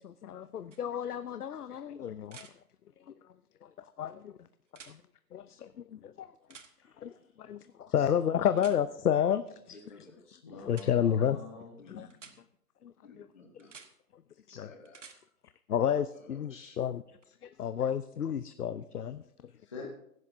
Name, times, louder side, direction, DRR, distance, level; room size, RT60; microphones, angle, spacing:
voice 1, 0.0-2.5 3.6-3.7 4.0-4.3 4.9-5.0 5.3-6.3 7.0-9.4 10.6-11.4 11.9-12.1 12.8-12.9 14.6-14.7 15.7-17.0 17.4-19.5, left 9 dB, 70° left, 13 dB, 0.7 m, -31 dB
sound 1, 0.7-0.8 2.3-2.5 4.7-5.0 6.5-6.7 8.6-8.8 10.7-10.9 12.1-12.4 13.6-13.9 14.9-15.2 17.2-17.3, right 5 dB, 50° right, 1.2 m, -50 dB
voice 2, 7.9-10.2 11.8-12.5 13.0-13.7 14.5-15.0 16.1-16.8, left 3 dB, 50° left, 0 dB, 4.2 m, -54 dB
voice 3, 10.4-11.8 19.6-19.9, left 4 dB, 20° left, -2 dB, 1.0 m, -45 dB
23.5 x 11.0 x 2.6 m, 0.74 s
hypercardioid pair, 165°, 48 cm